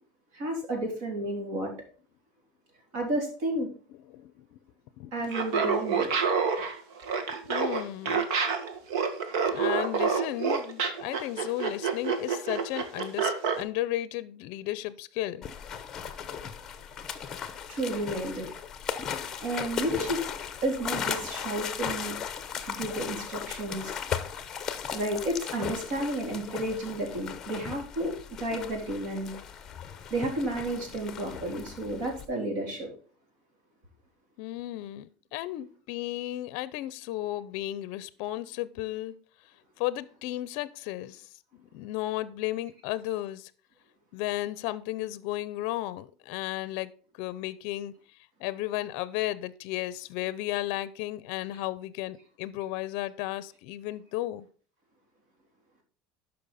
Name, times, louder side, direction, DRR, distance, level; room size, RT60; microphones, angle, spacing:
voice 1, 0.3-1.7 2.9-3.7 5.1-6.1 17.7-18.5 19.4-20.2 20.6-22.2 22.6-23.9 24.9-29.3 30.1-32.9, right 1 dB, 50° right, 3.5 m, -32 dB
voice 2, 3.9-4.6 5.0-5.1 7.3-8.3 9.5-15.5 34.4-39.1 39.8-43.5 44.1-47.9 48.4-54.5, left 15 dB, 55° left, 0.6 m, -34 dB
Laughter, 5.2-13.6, right 6 dB, 70° right, 1.6 m, -28 dB
sound 1, 15.4-32.3, left 8 dB, 20° left, 0.9 m, -37 dB
12.0 x 5.5 x 4.1 m
cardioid pair, 165°, 2 cm